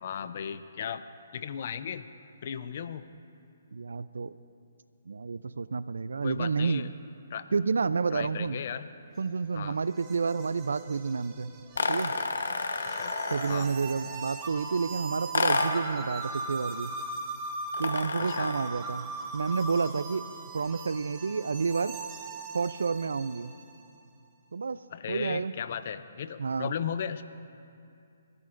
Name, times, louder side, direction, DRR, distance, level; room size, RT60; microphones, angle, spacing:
voice 1, 0.0-1.0 1.3-2.1 2.4-3.0 6.2-6.9 7.3-7.5 8.1-8.9 9.5-9.8 12.9-13.2 13.5-13.7 18.2-18.5 24.9-27.2, left 8 dB, 50° left, 12 dB, 0.5 m, -36 dB
voice 2, 3.7-4.3 5.1-6.9 7.5-8.6 9.2-11.5 11.9-12.1 13.3-16.9 17.8-20.2 20.5-22.0 22.5-23.6 24.5-24.8 25.1-25.5 26.4-26.7, right 5 dB, 80° right, 15 dB, 0.4 m, -30 dB
sound 1, 9.1-23.8, right 3 dB, 20° right, 1.2 m, -40 dB
sound 2, 11.7-13.7 15.3-15.9 17.7-18.8, left 3 dB, 80° left, 1.1 m, -30 dB
27.0 x 13.0 x 2.6 m, 2.5 s
hypercardioid pair, 150°, 0 cm